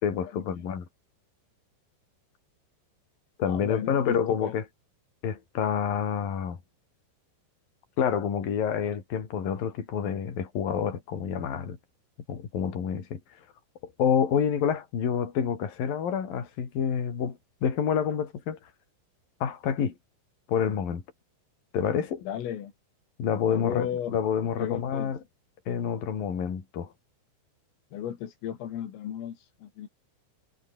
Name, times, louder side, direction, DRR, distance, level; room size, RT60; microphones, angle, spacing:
voice 1, 0.0-0.8 3.4-4.6 5.2-6.6 8.0-11.8 12.3-13.2 14.0-18.6 19.4-20.0 20.5-21.0 21.7-22.2 23.2-25.2 25.7-26.9, left 7 dB, 45° left, 5.2 m, -28 dB
voice 2, 3.5-4.6 22.2-22.7 23.5-24.2 24.4-25.1 27.9-29.9, left 10 dB, 80° left, 5.4 m, -35 dB
omnidirectional pair, 5.8 m